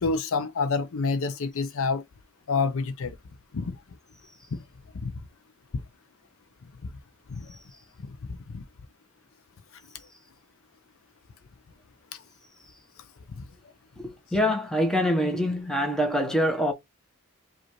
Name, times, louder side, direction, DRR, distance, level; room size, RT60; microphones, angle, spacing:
voice 1, 0.0-2.0 2.5-3.2 3.5-3.8 4.9-5.1 6.8-6.9 7.3-7.5 8.1-8.2 8.5-8.6 13.4-13.5, left 4 dB, 65° left, 0.6 m, -28 dB
voice 2, 14.0-16.7, equal, ahead, 0.9 m, -25 dB
5.0 x 2.5 x 3.0 m
head